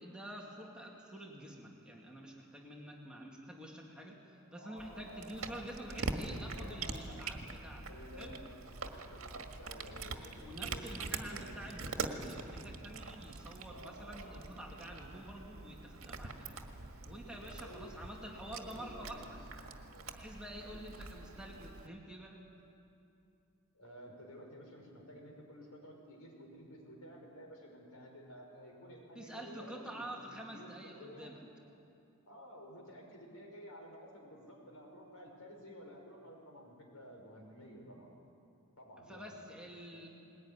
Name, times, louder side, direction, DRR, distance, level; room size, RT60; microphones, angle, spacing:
voice 1, 0.0-7.9 8.2-8.4 10.4-16.6 17.1-19.4 20.1-22.5 29.1-31.4 39.1-40.1, right 1 dB, 5° right, -2 dB, 2.3 m, -48 dB
voice 2, 4.5-5.6 5.9-6.0 6.5-7.2 7.9-8.5 8.8-11.6 13.7-14.6 17.3-18.0 18.5-19.3 19.8-20.1 20.7-21.2 23.7-31.3 32.3-38.1 38.8-40.0, equal, 80° left, 0 dB, 5.9 m, -53 dB
Cat, 4.8-21.9, right 3 dB, 65° right, 1.7 m, -44 dB
20.5 x 20.0 x 9.8 m, 2.7 s
head